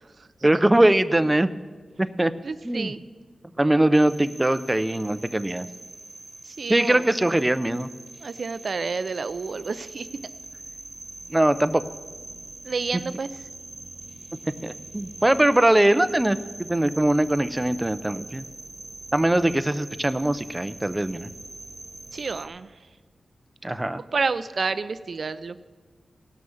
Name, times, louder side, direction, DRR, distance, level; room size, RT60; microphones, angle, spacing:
voice 1, 0.4-1.5 2.0-2.3 2.6-2.9 3.6-5.7 6.7-7.9 11.3-11.8 14.6-18.4 19.1-21.3 23.6-24.0, right 1 dB, 20° right, 12 dB, 0.6 m, -21 dB
voice 2, 2.4-3.0 6.5-7.0 8.2-10.1 12.6-13.3 22.1-22.7 24.1-25.6, right 4 dB, 65° right, 14 dB, 0.5 m, -29 dB
sound 1, 3.9-22.5, right 2 dB, 40° right, 1.3 m, -43 dB
17.0 x 6.2 x 7.2 m, 1.4 s
cardioid pair, 50°, 0 cm